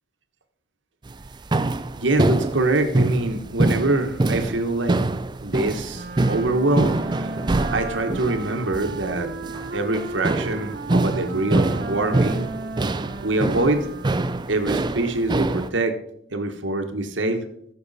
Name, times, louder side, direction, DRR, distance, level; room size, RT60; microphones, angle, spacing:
sound 1, 1.1-15.7, right 2 dB, 25° right, 0.4 m, -25 dB
voice 1, 2.0-5.0 5.4-7.3 7.7-9.3 9.7-12.5 13.2-13.9 14.5-15.9 16.3-17.4, right 2 dB, 80° right, 5 dB, 1.3 m, -24 dB
Wind instrument woodwind instrument, 5.9-14.4, right 3 dB, 55° right, 0.7 m, -35 dB
14.0 x 6.6 x 4.1 m, 0.70 s
head